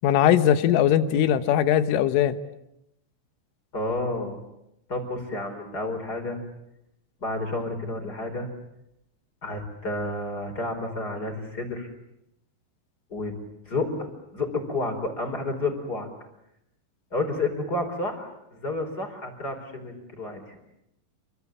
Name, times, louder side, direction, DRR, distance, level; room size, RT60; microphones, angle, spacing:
voice 1, 0.0-2.4, left 10 dB, 80° left, 11 dB, 3.7 m, -20 dB
voice 2, 3.7-4.4 4.9-6.4 7.2-8.5 9.4-11.9 13.1-13.3 13.7-16.1 17.1-20.6, left 2 dB, 20° left, 4 dB, 4.4 m, -30 dB
28.5 x 24.0 x 8.6 m, 0.82 s
omnidirectional pair, 5.8 m